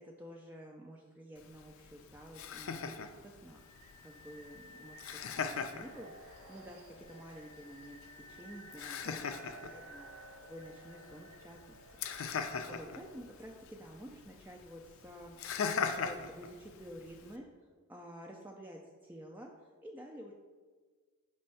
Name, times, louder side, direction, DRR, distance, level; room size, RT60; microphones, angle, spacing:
voice 1, 0.0-3.6 4.0-11.8 12.3-15.4 15.9-17.5 17.9-19.5 19.8-20.3, equal, 10° right, -1 dB, 0.3 m, -50 dB
Laughter, 1.4-17.4, left 5 dB, 70° left, 0.4 m, -42 dB
sound 1, 3.4-14.2, right 1 dB, 80° right, 0.8 m, -55 dB
5.3 x 3.2 x 5.4 m, 1.5 s
head